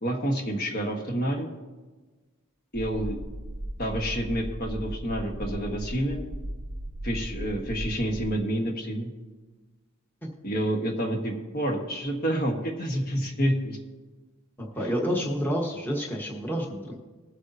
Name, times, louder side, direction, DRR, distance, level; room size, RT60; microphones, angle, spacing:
voice 1, 0.0-1.5 2.7-3.2 3.8-6.2 7.0-9.1 10.4-13.8, equal, 45° left, 2 dB, 1.4 m, -28 dB
sound 1, 2.7-8.4, right 1 dB, 30° right, 0.6 m, -36 dB
voice 2, 14.6-17.0, equal, 10° left, -1 dB, 1.3 m, -29 dB
21.0 x 8.2 x 2.8 m, 1.3 s
head